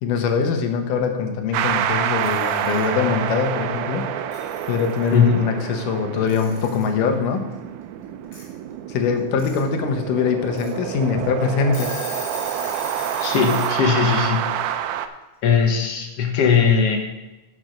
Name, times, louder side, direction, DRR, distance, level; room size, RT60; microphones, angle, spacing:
voice 1, 0.0-4.1 4.7-7.4 8.9-11.9, left 6 dB, 85° left, 6 dB, 2.6 m, -22 dB
sound 1, 1.5-15.1, right 10 dB, 80° right, 2.0 m, -27 dB
Alarm / Clock, 2.1-2.9 4.0-4.1 4.3-5.1 6.3-6.9 8.3-8.4 9.2-9.6 10.0-10.1 10.5-10.7 11.2-11.3 11.6-13.7, left 1 dB, 25° left, 2.5 m, -36 dB
voice 2, 5.1-5.5 13.2-14.5 15.4-17.0, left 6 dB, 60° left, 2 dB, 1.7 m, -19 dB
11.0 x 6.1 x 5.1 m, 1.1 s
omnidirectional pair, 3.6 m